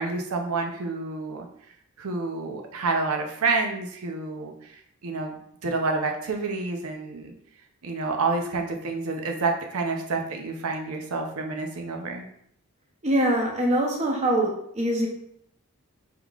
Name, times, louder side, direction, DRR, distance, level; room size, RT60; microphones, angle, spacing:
voice 1, 0.0-1.5 2.0-5.3 5.6-7.3 7.8-12.3, right 3 dB, 90° right, 3 dB, 0.6 m, -28 dB
voice 2, 13.0-15.1, right 1 dB, 30° right, 0 dB, 0.8 m, -23 dB
4.7 x 3.6 x 2.4 m, 0.71 s
head